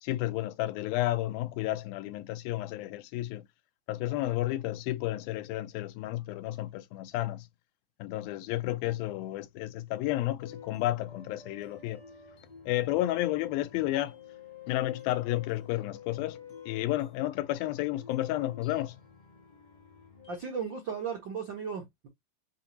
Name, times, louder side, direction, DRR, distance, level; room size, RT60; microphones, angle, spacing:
voice 1, 0.0-3.5 3.9-7.5 8.0-12.0 12.7-14.2 14.7-16.4 16.7-19.0, left 15 dB, 85° left, 2.4 m, -31 dB
sound 1, 10.4-20.4, left 7 dB, 55° left, 0.5 m, -51 dB
voice 2, 20.3-22.1, right 6 dB, 75° right, 1.1 m, -36 dB
6.7 x 2.9 x 2.4 m
omnidirectional pair, 4.2 m